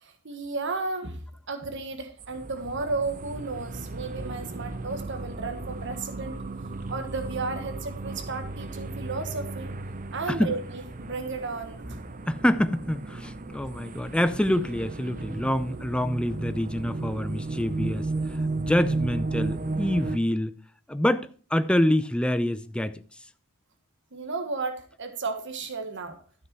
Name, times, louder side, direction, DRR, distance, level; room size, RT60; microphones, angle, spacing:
voice 1, 0.0-1.2 1.5-6.4 6.9-9.7 10.1-12.0 24.1-26.2, right 3 dB, 55° right, 1.5 m, -33 dB
sound 1, 2.2-20.2, right 2 dB, 40° right, 0.7 m, -34 dB
voice 2, 12.3-20.6 20.9-23.0, left 1 dB, 5° left, 0.5 m, -26 dB
13.0 x 6.5 x 4.6 m
head